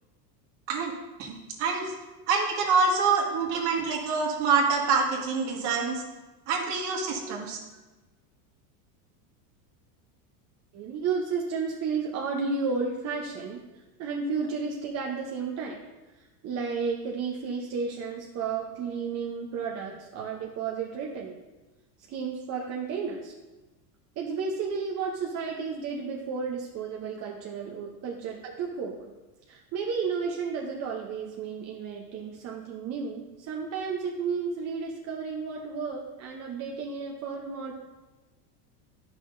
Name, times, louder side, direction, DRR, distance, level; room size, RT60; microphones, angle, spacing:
voice 1, 1.2-1.9 2.3-6.0 6.5-7.6, right 4 dB, 55° right, 0 dB, 1.7 m, -26 dB
voice 2, 10.7-13.6 14.0-15.8 16.2-21.4 22.1-23.3 24.2-29.0 29.5-37.7, right 5 dB, 35° right, -1 dB, 0.8 m, -32 dB
10.5 x 5.7 x 2.6 m, 1.1 s
supercardioid pair, 130°, 48 cm